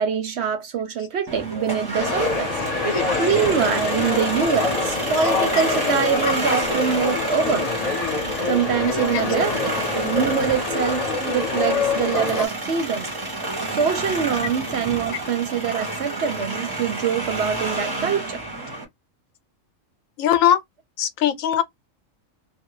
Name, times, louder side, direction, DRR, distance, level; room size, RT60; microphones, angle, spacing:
voice 1, 0.0-2.5 2.9-7.7 8.5-13.1 13.7-18.4, right 7 dB, 65° right, 0.7 m, -24 dB
sound 1, 1.3-18.8, right 2 dB, 25° right, 0.7 m, -29 dB
sound 2, 2.0-12.5, left 4 dB, 35° left, 0.7 m, -25 dB
voice 2, 20.2-20.6 21.0-21.6, left 10 dB, 80° left, 1.0 m, -19 dB
2.3 x 2.1 x 3.0 m
omnidirectional pair, 1.4 m